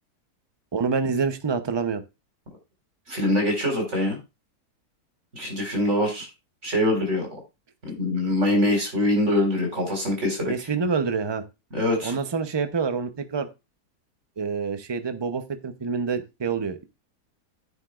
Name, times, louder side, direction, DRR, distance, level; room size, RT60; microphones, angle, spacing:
voice 1, 0.7-2.0 10.5-11.4 12.0-13.5 14.4-16.8, right 5 dB, 25° right, 10 dB, 0.5 m, -27 dB
voice 2, 3.1-4.2 5.3-6.3 6.6-7.4 7.8-10.5 11.7-12.1, left 1 dB, 45° right, 1 dB, 4.8 m, -24 dB
10.0 x 9.9 x 2.5 m, 0.25 s
omnidirectional pair, 1.8 m